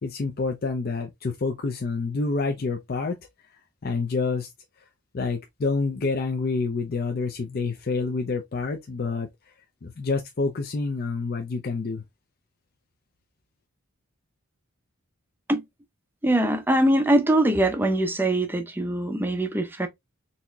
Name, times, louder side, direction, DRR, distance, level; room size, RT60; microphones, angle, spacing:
voice 1, 0.0-3.2 3.8-4.5 5.1-9.3 9.8-12.0, left 4 dB, 45° left, 0.5 m, -28 dB
voice 2, 16.2-19.9, right 1 dB, 10° right, 0.5 m, -22 dB
4.0 x 2.9 x 2.2 m
head